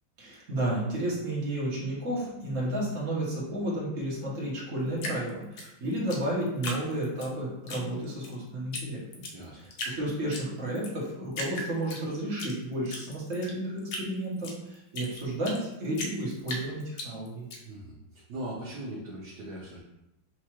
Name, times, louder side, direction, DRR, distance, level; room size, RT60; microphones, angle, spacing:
voice 1, 0.2-9.2 9.5-17.5, right 1 dB, 40° right, -5 dB, 1.5 m, -32 dB
Drip, 5.0-7.3 7.7-8.3 8.7-8.8 9.1-10.0 10.3-10.9 11.3-12.5 12.9-15.6 16.0-17.6, left 1 dB, 60° left, 1.1 m, -37 dB
voice 2, 17.6-19.8, right 1 dB, 60° right, -5 dB, 1.2 m, -40 dB
6.0 x 2.8 x 3.0 m, 0.88 s
omnidirectional pair, 2.4 m